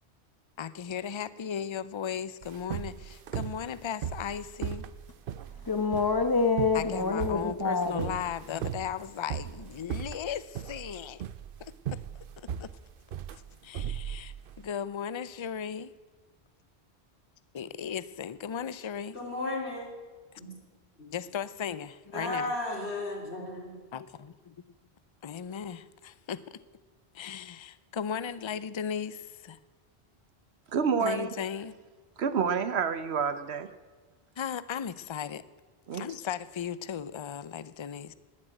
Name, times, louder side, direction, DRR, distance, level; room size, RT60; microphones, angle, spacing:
voice 1, 0.6-4.8 6.7-11.3 11.6-12.7 13.3-15.9 17.5-19.2 21.1-22.5 23.9-24.5 25.2-26.6 27.1-29.6 31.0-31.7 34.4-35.5 35.9-38.1, left 8 dB, 35° left, 0.5 m, -36 dB
sound 1, 2.4-14.6, right 9 dB, 60° right, 0.8 m, -37 dB
voice 2, 5.7-8.1, left 4 dB, 20° left, 1.1 m, -27 dB
voice 3, 19.1-19.9 20.4-20.5 21.0-21.1 22.1-23.8, left 2 dB, 80° left, 3.6 m, -34 dB
voice 4, 30.7-31.3 32.2-33.7 35.9-36.0, right 6 dB, 80° right, 1.1 m, -28 dB
19.5 x 7.6 x 9.1 m
omnidirectional pair, 1.1 m